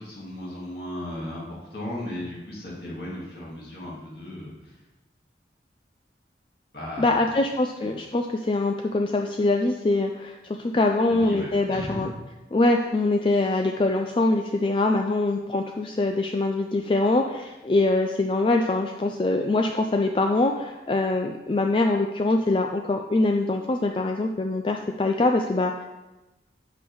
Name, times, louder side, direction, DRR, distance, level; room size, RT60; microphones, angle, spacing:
voice 1, 0.0-4.8 6.7-7.2 7.8-7.9 11.1-12.1, left 1 dB, 60° left, -5 dB, 2.2 m, -36 dB
voice 2, 7.0-10.4 10.7-12.1 12.5-25.8, left 2 dB, 30° left, 3 dB, 0.3 m, -23 dB
7.7 x 5.4 x 4.6 m, 1.1 s
head